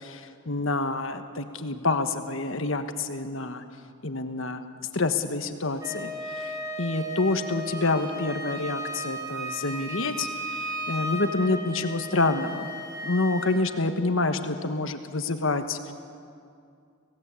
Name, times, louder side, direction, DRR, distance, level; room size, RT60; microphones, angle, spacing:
voice 1, 0.0-3.6 4.0-4.6 4.9-6.1 6.3-6.5 6.8-10.3 10.6-12.7 13.0-15.9, left 3 dB, 65° left, 8 dB, 1.4 m, -27 dB
Wind instrument woodwind instrument, 5.8-13.6, equal, 15° right, 2.7 m, -35 dB
25.5 x 17.0 x 8.4 m, 2.4 s
head